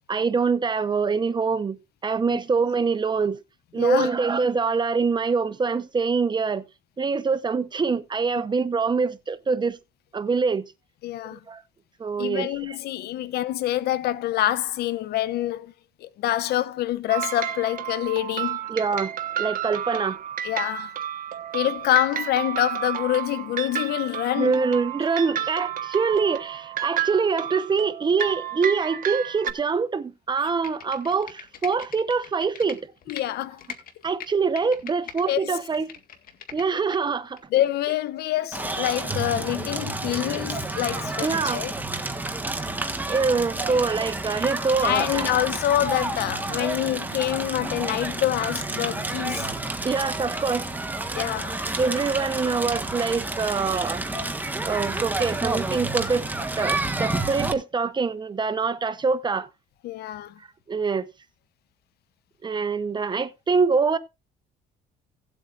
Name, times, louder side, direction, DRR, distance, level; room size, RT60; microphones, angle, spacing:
voice 1, 0.1-1.8 2.0-3.4 3.7-6.7 7.0-9.8 10.1-10.7 11.3-11.6 12.0-12.8 18.7-20.2 24.4-32.9 34.0-35.9 36.5-37.4 41.2-41.7 43.1-45.3 49.8-50.7 51.8-54.0 54.6-59.5 60.7-61.1 62.4-64.0, right 5 dB, 25° right, 0.9 m, -24 dB
voice 2, 3.8-4.1 11.0-11.4 12.2-15.7 16.0-18.6 20.4-20.9 21.5-24.6 33.1-33.6 35.3-35.6 37.5-41.7 44.8-49.5 51.1-51.6 59.8-60.3, left 13 dB, 70° left, 0.8 m, -26 dB
sound 1, 17.1-29.5, right 10 dB, 55° right, 1.4 m, -31 dB
Computer keyboard, 30.5-33.2 33.6-35.2 35.6-37.0 37.4-37.5, left 8 dB, 55° left, 2.0 m, -41 dB
Crackle, 38.5-57.5, right 2 dB, 10° right, 1.5 m, -30 dB
17.5 x 8.1 x 2.5 m
cardioid pair, 110°, 17 cm